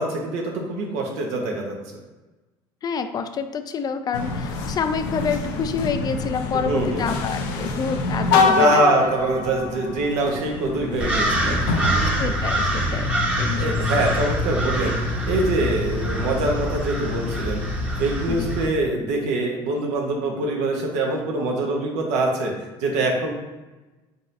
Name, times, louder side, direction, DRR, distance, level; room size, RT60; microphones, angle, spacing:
voice 1, 0.0-1.8 6.6-7.1 8.4-11.8 13.3-15.0 15.3-17.6 18.0-22.5 22.8-23.3, right 2 dB, 75° right, 1 dB, 1.0 m, -24 dB
voice 2, 2.8-8.8 12.0-13.1 13.4-13.9 18.3-18.5, left 6 dB, 35° left, 9 dB, 0.4 m, -28 dB
sound 1, 4.1-12.3, left 4 dB, 80° left, 0.6 m, -25 dB
sound 2, 11.0-18.7, equal, 10° right, 0.9 m, -24 dB
4.2 x 4.0 x 2.6 m, 1.1 s
supercardioid pair, 95°, 12 cm